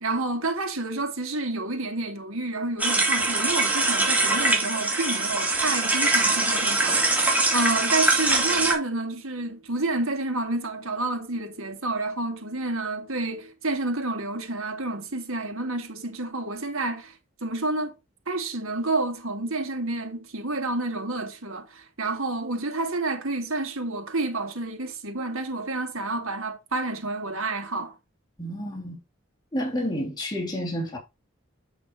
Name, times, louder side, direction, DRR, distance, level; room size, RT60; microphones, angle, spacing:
voice 1, 0.0-18.0 18.3-28.0, right 2 dB, 85° right, 2.2 m, -29 dB
sound 1, 2.8-8.7, right 2 dB, 5° right, 2.2 m, -23 dB
voice 2, 28.4-29.0 29.5-31.0, equal, 20° left, 2.7 m, -30 dB
8.3 x 6.0 x 2.8 m
head